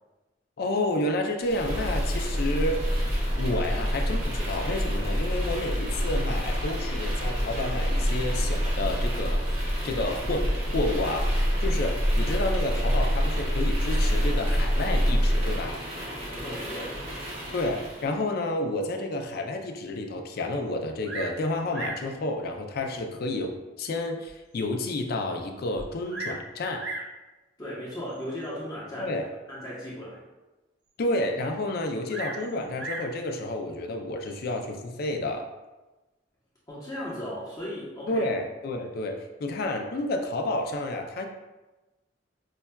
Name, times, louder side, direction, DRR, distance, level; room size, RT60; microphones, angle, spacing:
voice 1, 0.6-2.9 3.4-9.4 9.8-15.8 17.5-26.9 29.0-29.3 31.0-35.5 38.1-41.3, left 2 dB, 55° left, 4 dB, 0.4 m, -30 dB
sound 1, 1.4-18.1, equal, 35° right, 0.8 m, -27 dB
voice 2, 16.2-17.1 27.6-29.2 29.5-30.2 36.7-38.3, equal, 20° left, -7 dB, 0.8 m, -36 dB
Bird vocalization bird call bird song, 21.0-21.4 21.7-22.1 22.9-23.0 23.7-23.8 24.3-24.4 24.6-24.7 25.7-26.4 26.8-27.1 28.1-28.5 32.1-33.1 34.2-34.6, right 2 dB, 70° right, 0.5 m, -36 dB
5.3 x 2.2 x 2.2 m, 1.1 s
head